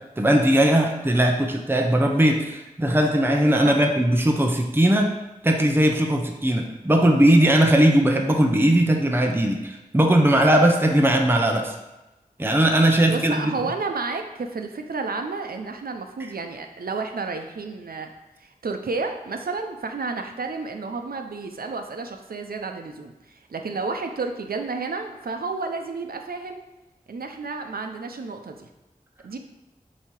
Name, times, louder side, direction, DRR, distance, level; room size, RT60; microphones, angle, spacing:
voice 1, 0.0-5.1 5.4-11.7 12.4-13.4, right 1 dB, 15° right, 3 dB, 0.7 m, -19 dB
voice 2, 13.1-18.1 18.4-26.6 27.1-28.7 29.2-29.4, right 4 dB, 80° right, 5 dB, 0.6 m, -31 dB
7.1 x 2.8 x 4.7 m, 1.0 s
wide cardioid pair, 55°, 15 cm